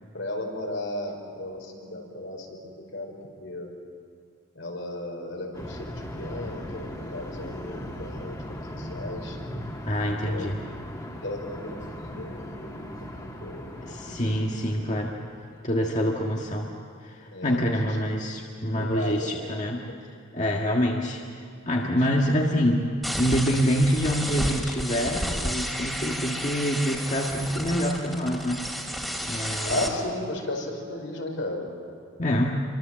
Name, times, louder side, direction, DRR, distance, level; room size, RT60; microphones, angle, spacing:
voice 1, 0.1-2.6 2.9-3.1 3.4-3.7 4.5-9.4 10.0-10.4 11.2-14.6 17.3-17.7 18.8-19.3 29.6-31.7, left 1 dB, 75° left, 1 dB, 5.2 m, -35 dB
sound 1, 5.5-15.8, equal, 20° left, 2.5 m, -38 dB
voice 2, 9.9-10.6 13.8-15.2 15.6-16.7 17.0-19.8 20.3-28.7 29.2-29.9 32.2-32.6, equal, 35° left, -1 dB, 1.7 m, -26 dB
sound 2, 23.0-29.9, equal, ahead, 2.6 m, -32 dB
28.0 x 24.0 x 7.6 m, 2.3 s
head